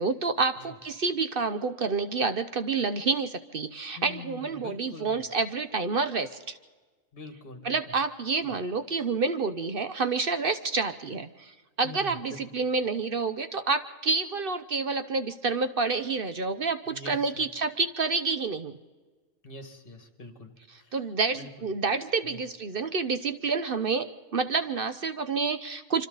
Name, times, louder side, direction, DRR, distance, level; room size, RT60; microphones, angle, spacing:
voice 1, 0.0-6.6 7.6-11.5 11.8-18.8 20.7-26.1, right 4 dB, 50° right, 10 dB, 0.9 m, -28 dB
voice 2, 3.9-5.2 7.1-7.8 11.8-12.4 16.9-17.4 19.4-20.5 20.8-20.9 21.4-21.5 22.3-22.4, left 2 dB, 40° left, 6 dB, 2.3 m, -44 dB
26.0 x 25.5 x 4.0 m, 1.3 s
omnidirectional pair, 1.4 m